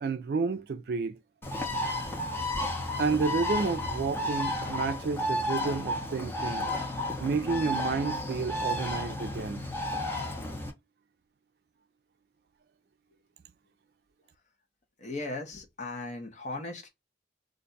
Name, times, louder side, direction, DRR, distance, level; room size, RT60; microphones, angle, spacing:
voice 1, 0.0-1.2 3.0-6.7 7.2-9.6, right 4 dB, 60° right, 0.4 m, -30 dB
Bird, 1.4-10.7, left 1 dB, 10° left, 0.7 m, -32 dB
voice 2, 15.0-16.9, left 2 dB, 40° left, 0.9 m, -37 dB
2.5 x 2.3 x 3.9 m
head